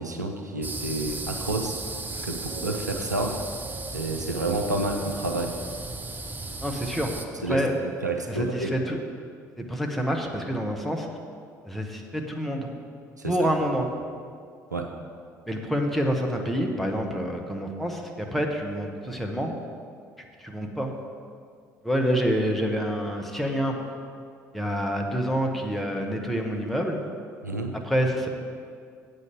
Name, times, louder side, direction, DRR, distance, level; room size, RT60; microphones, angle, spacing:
voice 1, 0.0-1.8 2.2-3.4 3.9-5.6 7.4-8.7 13.2-13.4 14.7-14.9 27.4-27.7, right 2 dB, 85° right, 3 dB, 0.6 m, -29 dB
sound 1, 0.6-7.2, right 3 dB, 20° right, 0.7 m, -35 dB
voice 2, 6.6-7.1 7.5-7.7 8.3-9.0 9.6-11.1 11.6-12.7 13.3-13.9 15.5-19.5 20.4-20.9 21.8-23.8 24.5-27.0 27.8-28.3, equal, ahead, 1 dB, 1.2 m, -27 dB
8.2 x 5.3 x 7.5 m, 2.2 s
figure-of-eight pair, 55°, 9 cm